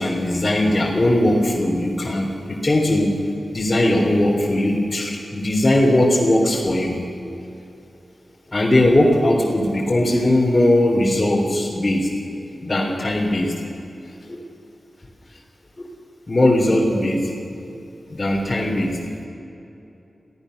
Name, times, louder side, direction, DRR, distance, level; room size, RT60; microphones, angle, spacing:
voice 1, 0.0-3.2 3.5-7.0 8.5-12.1 12.6-13.5 14.3-14.4 15.8-15.9 16.3-17.3 18.1-19.0, left 1 dB, 30° left, -4 dB, 3.8 m, -19 dB
27.5 x 17.0 x 6.7 m, 2.8 s
wide cardioid pair, 80°, 0 cm